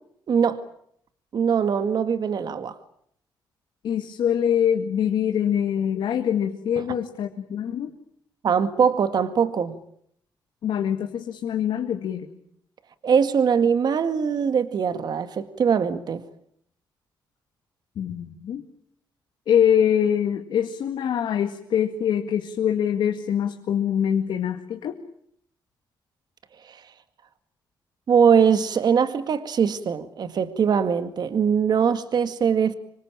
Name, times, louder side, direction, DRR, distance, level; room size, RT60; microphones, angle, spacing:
voice 1, 0.3-0.6 1.3-2.8 6.8-6.9 8.4-9.8 13.0-16.2 26.7-26.8 28.1-32.7, right 7 dB, 60° right, 2.0 m, -22 dB
voice 2, 3.8-7.9 10.6-12.3 18.0-18.6 19.5-25.0, left 9 dB, 80° left, 2.1 m, -24 dB
26.5 x 24.0 x 8.9 m
cardioid pair, 95°, 8 cm